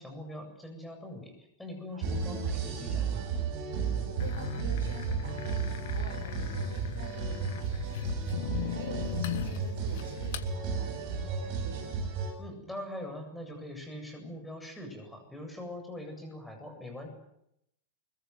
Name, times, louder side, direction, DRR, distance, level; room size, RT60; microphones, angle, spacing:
voice 1, 0.0-3.3 12.4-17.1, left 1 dB, 5° left, 4 dB, 7.9 m, -42 dB
sound 1, 2.0-12.3, right 5 dB, 45° right, 6.8 m, -33 dB
voice 2, 3.7-5.6 5.9-12.1, right 3 dB, 65° right, 6 dB, 6.3 m, -48 dB
sound 2, 4.2-10.5, left 10 dB, 55° left, 1.4 m, -38 dB
24.5 x 22.5 x 8.1 m, 0.80 s
figure-of-eight pair, 90°, 0 cm